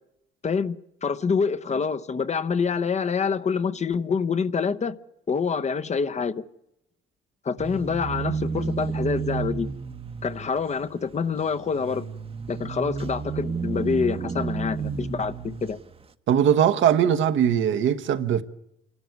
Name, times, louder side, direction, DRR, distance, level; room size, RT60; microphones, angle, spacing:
voice 1, 0.4-5.0 5.3-6.4 7.4-9.7 10.2-12.1 12.5-15.8, left 5 dB, 35° left, 0.8 m, -26 dB
sound 1, 7.6-15.9, right 5 dB, 25° right, 0.9 m, -32 dB
voice 2, 16.3-18.4, right 9 dB, 65° right, 1.1 m, -20 dB
27.0 x 12.5 x 9.4 m
cardioid pair, 95°, 21 cm